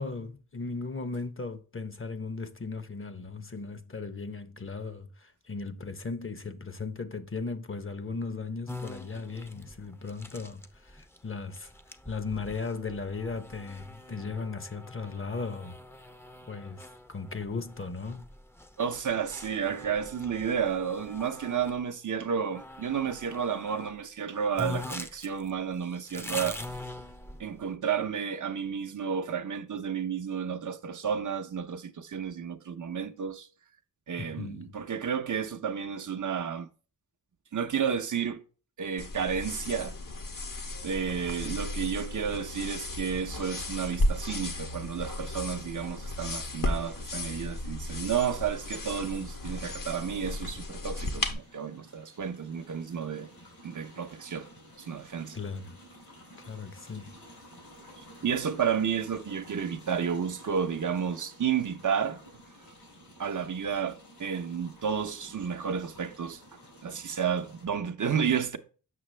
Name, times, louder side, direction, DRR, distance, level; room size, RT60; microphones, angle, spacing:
voice 1, 0.0-11.7 12.1-15.8 16.5-18.3 34.2-34.7 55.3-55.8 56.4-57.1, left 4 dB, 35° left, 0.8 m, -37 dB
sound 1, 8.7-21.8 22.5-23.9 24.2-24.3 24.6-27.7, left 2 dB, 5° left, 0.5 m, -43 dB
voice 2, 18.8-26.6 27.4-33.5 34.1-36.7 37.5-38.4 38.8-40.0 40.8-53.3 53.6-54.5 54.8-55.4 58.2-62.2 63.2-66.4 66.8-68.6, right 7 dB, 60° right, 0.6 m, -31 dB
sound 2, 39.0-51.3, left 1 dB, 70° left, 1.2 m, -34 dB
sound 3, 48.2-67.7, equal, 85° left, 4.4 m, -53 dB
7.6 x 6.0 x 3.2 m
wide cardioid pair, 75°, 35 cm